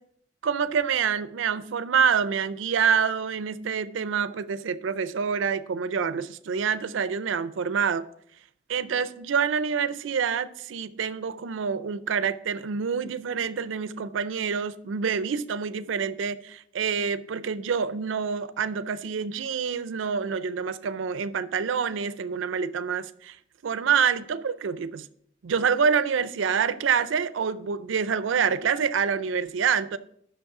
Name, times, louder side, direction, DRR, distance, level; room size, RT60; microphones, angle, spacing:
voice 1, 0.4-8.0 8.7-23.4 23.6-25.1 25.4-30.0, right 6 dB, 90° right, 0.4 m, -27 dB
7.9 x 6.4 x 4.8 m
head